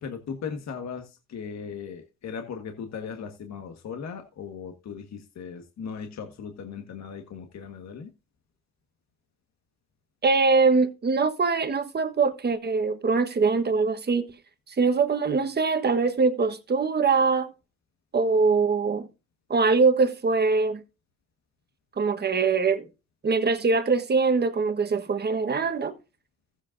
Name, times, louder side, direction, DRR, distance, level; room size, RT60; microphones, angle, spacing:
voice 1, 0.0-8.1, left 6 dB, 60° left, 1.6 m, -38 dB
voice 2, 10.2-14.3 14.8-17.5 18.1-19.1 19.5-20.8 22.0-22.9 23.2-25.9, right 4 dB, 35° right, 1.4 m, -23 dB
15.0 x 8.2 x 2.6 m
cardioid pair, 90°, 30 cm